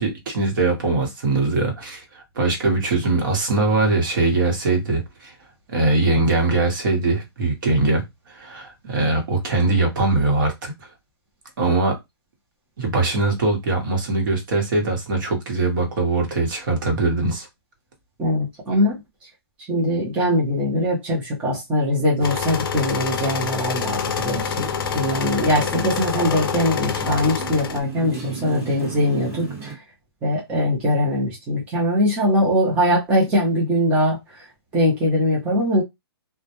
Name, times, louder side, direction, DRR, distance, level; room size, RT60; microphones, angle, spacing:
voice 1, 0.0-5.3 5.7-10.7 11.6-12.0 12.8-17.5, right 2 dB, 50° right, 1.0 m, -21 dB
voice 2, 18.2-19.0 19.7-29.8 30.2-34.5 34.7-35.8, left 1 dB, 10° right, 0.5 m, -21 dB
sound 1, 22.2-27.8, left 7 dB, 55° left, 0.5 m, -26 dB
Motorcycle, 24.3-29.8, right 4 dB, 30° right, 1.3 m, -36 dB
2.1 x 2.0 x 2.8 m
hypercardioid pair, 165°, 14 cm